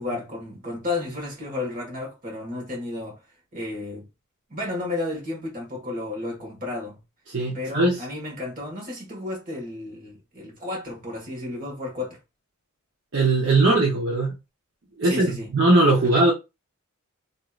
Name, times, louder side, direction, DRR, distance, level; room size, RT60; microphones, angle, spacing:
voice 1, 0.0-3.2 3.5-4.1 4.5-7.0 7.5-12.2 15.0-15.5, left 2 dB, 35° right, 1.4 m, -32 dB
voice 2, 7.3-8.0 13.1-14.4 15.0-16.3, right 2 dB, 55° right, 0.8 m, -20 dB
3.0 x 2.8 x 2.4 m
head